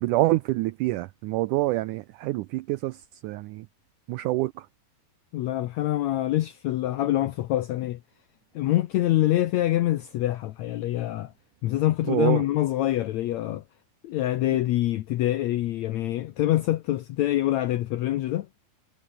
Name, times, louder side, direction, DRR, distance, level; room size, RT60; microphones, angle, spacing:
voice 1, 0.0-3.7 4.1-4.7 12.1-12.5, right 18 dB, 90° right, 1.8 m, -26 dB
voice 2, 5.3-8.0 8.5-11.3 11.6-13.6 14.0-18.5, left 14 dB, 75° left, 1.6 m, -25 dB
omnidirectional pair, 4.1 m